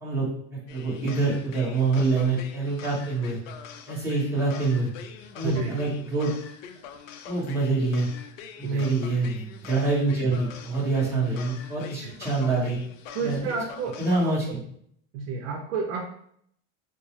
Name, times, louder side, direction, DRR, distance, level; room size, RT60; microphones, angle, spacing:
voice 1, 0.0-3.4 3.9-4.9 5.3-6.3 7.3-8.1 8.6-12.8 13.2-13.4 14.0-14.4, right 3 dB, 5° right, -8 dB, 1.1 m, -26 dB
sound 1, 0.7-14.4, left 7 dB, 85° left, 0.5 m, -44 dB
voice 2, 5.4-5.8 8.6-8.9 12.0-12.2 13.1-14.5 15.1-16.1, right 4 dB, 65° right, 1 dB, 0.6 m, -31 dB
4.3 x 2.0 x 3.0 m, 0.68 s
supercardioid pair, 165°, 38 cm